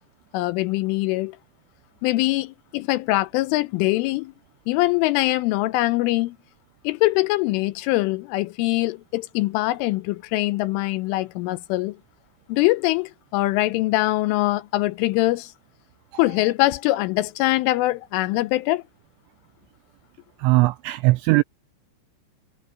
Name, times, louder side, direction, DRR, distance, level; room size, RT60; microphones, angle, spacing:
voice 1, 0.3-1.4 2.0-4.3 4.7-6.4 6.8-12.0 12.5-15.5 16.2-18.8, left 19 dB, 80° left, 3.2 m, -23 dB
voice 2, 20.4-21.4, right 21 dB, 85° right, 2.6 m, -19 dB
omnidirectional pair, 5.8 m